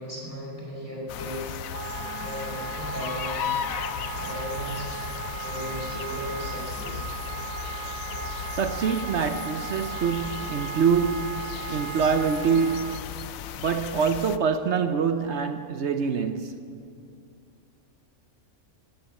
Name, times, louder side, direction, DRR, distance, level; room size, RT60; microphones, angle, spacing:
voice 1, 0.0-3.5 4.1-5.0 5.4-7.0, equal, 10° left, 4.6 m, -37 dB
sound 1, 1.1-14.4, left 8 dB, 75° left, 1.0 m, -35 dB
Wind instrument woodwind instrument, 1.7-13.0, right 9 dB, 75° right, 1.1 m, -37 dB
voice 2, 8.5-11.4 11.7-13.0 13.6-16.6, right 6 dB, 60° right, 0.9 m, -25 dB
17.0 x 10.5 x 8.2 m
omnidirectional pair, 1.5 m